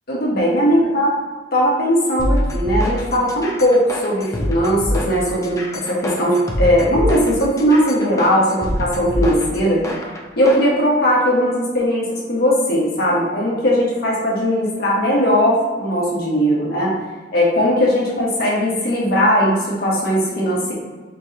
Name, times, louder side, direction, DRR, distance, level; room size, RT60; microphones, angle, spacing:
voice 1, 0.1-1.1 1.5-9.8 10.4-16.9 17.3-20.7, equal, 60° left, -4 dB, 1.4 m, -18 dB
sound 1, 2.2-10.7, equal, 20° left, 0.6 m, -24 dB
4.5 x 3.0 x 3.9 m, 1.3 s
head